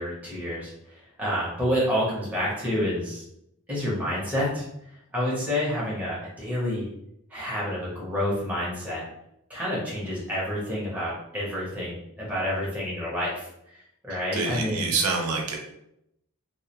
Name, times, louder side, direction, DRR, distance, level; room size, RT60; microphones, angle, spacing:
voice 1, 0.0-3.2 3.7-6.9 7.3-9.1 9.5-14.9, equal, 5° right, -7 dB, 0.7 m, -29 dB
voice 2, 14.1-15.6, right 4 dB, 80° right, 0 dB, 0.5 m, -27 dB
2.2 x 2.1 x 2.8 m, 0.79 s
head